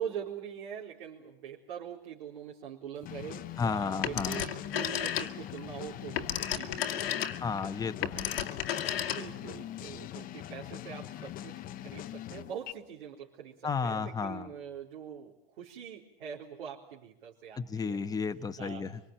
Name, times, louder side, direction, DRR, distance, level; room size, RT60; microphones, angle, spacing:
voice 1, 0.0-7.3 8.9-18.0 18.4-18.8, right 8 dB, 70° right, -3 dB, 4.1 m, -43 dB
sound 1, 3.0-12.7, left 12 dB, 30° left, 1.0 m, -42 dB
voice 2, 3.6-4.5 7.4-8.3 13.6-14.5 17.6-19.0, left 5 dB, 10° left, 9 dB, 1.2 m, -33 dB
Telephone, 4.0-5.6 5.9-9.5, left 10 dB, 80° left, 1.9 m, -33 dB
25.5 x 24.5 x 9.1 m, 0.82 s
hypercardioid pair, 125°, 30 cm